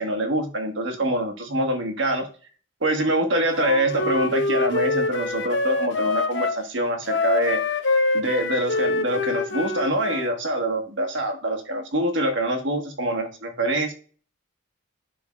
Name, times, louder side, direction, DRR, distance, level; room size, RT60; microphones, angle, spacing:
voice 1, 0.0-2.3 2.8-7.6 8.1-13.9, right 1 dB, 70° right, 3 dB, 1.3 m, -25 dB
Wind instrument woodwind instrument, 3.5-6.6 7.0-10.3, left 3 dB, 65° left, 0.8 m, -25 dB
10.5 x 3.8 x 2.4 m, 0.39 s
head